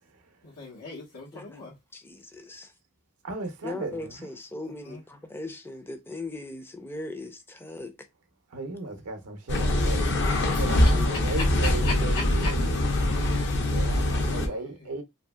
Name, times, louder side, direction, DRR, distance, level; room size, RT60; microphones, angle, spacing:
voice 1, 0.4-1.7 4.8-5.0 10.5-10.9 11.3-12.5 13.1-13.5 14.4-15.0, left 3 dB, 90° left, 1.1 m, -38 dB
voice 2, 1.9-2.7 3.6-7.9, left 2 dB, 10° left, 0.4 m, -39 dB
voice 3, 3.2-4.2 8.5-10.1 10.6-12.8 13.7-15.0, right 2 dB, 75° right, 0.6 m, -36 dB
sound 1, 9.5-14.5, left 1 dB, 55° left, 0.6 m, -23 dB
2.7 x 2.6 x 2.2 m
head